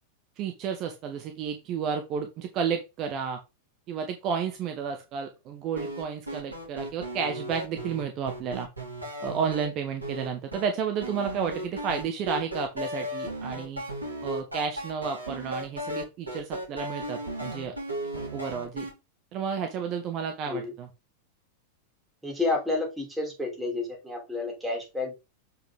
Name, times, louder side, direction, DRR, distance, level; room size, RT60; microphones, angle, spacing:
voice 1, 0.4-3.4 3.9-8.7 9.2-13.8 14.2-17.8 18.3-18.9 19.3-20.9, right 6 dB, 35° right, 6 dB, 1.1 m, -32 dB
sound 1, 5.8-9.7 10.0-10.6 11.0-18.9, right 1 dB, 80° right, 3.0 m, -35 dB
voice 2, 22.2-25.1, left 3 dB, 5° right, 1 dB, 3.1 m, -30 dB
7.1 x 5.1 x 3.7 m, 0.26 s
figure-of-eight pair, 90°, 0 cm